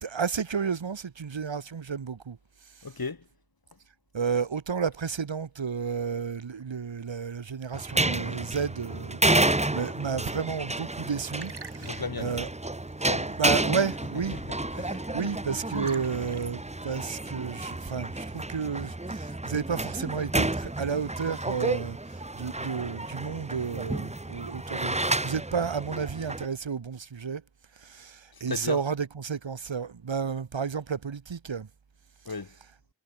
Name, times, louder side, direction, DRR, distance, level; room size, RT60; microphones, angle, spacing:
voice 1, 0.0-2.4 4.1-12.5 13.2-14.4 14.7-22.0 22.3-27.4 27.8-31.7, right 6 dB, 85° right, 3.5 m, -32 dB
voice 2, 2.8-3.3 3.7-3.8 11.8-12.4 13.0-13.4 14.3-15.2 28.3-28.8 32.2-32.5, left 4 dB, 55° left, 4.7 m, -36 dB
sound 1, 7.7-26.5, right 2 dB, 15° right, 1.5 m, -31 dB
Liquid, 10.9-19.0, right 4 dB, 60° right, 6.1 m, -51 dB
cardioid pair, 55°, 44 cm